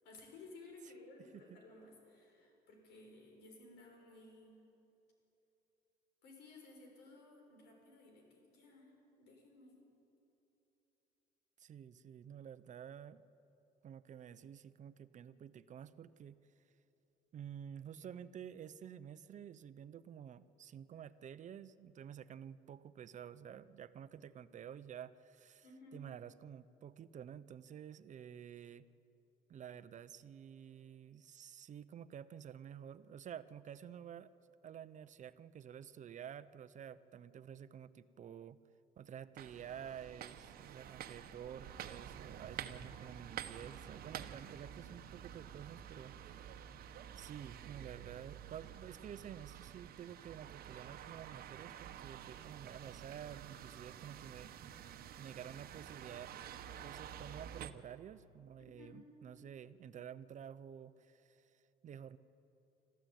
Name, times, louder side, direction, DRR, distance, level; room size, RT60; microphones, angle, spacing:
voice 1, 0.0-4.6 6.2-9.7 25.6-26.0 58.6-59.0, left 2 dB, 90° left, 2 dB, 6.3 m, -57 dB
voice 2, 11.6-13.2 13.8-16.4 17.3-25.6 25.9-28.9 29.5-34.3 34.6-38.6 39.0-46.5 47.1-54.5 55.2-56.3 56.8-61.5 61.8-62.2, right 9 dB, 45° right, 14 dB, 0.7 m, -50 dB
sound 1, 39.4-57.7, right 10 dB, 65° right, 1.1 m, -50 dB
26.0 x 14.5 x 9.3 m, 3.0 s
cardioid pair, 110°, 17 cm